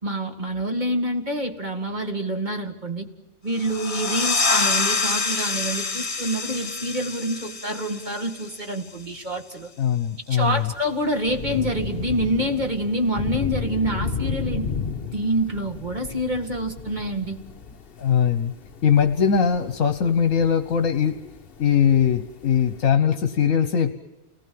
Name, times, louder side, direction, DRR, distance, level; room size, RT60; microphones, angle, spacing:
voice 1, 0.0-3.1 3.4-9.7 10.3-14.7 15.1-17.4, right 1 dB, 30° right, 4 dB, 2.2 m, -27 dB
sound 1, 3.5-8.9, left 4 dB, 25° left, 1.1 m, -26 dB
voice 2, 9.8-10.7 18.0-18.5 18.8-21.2 21.6-24.0, left 7 dB, 65° left, 8 dB, 1.5 m, -20 dB
Thunder / Rain, 10.4-22.9, left 5 dB, 45° left, 1.2 m, -33 dB
30.0 x 19.5 x 7.7 m, 1.1 s
omnidirectional pair, 1.5 m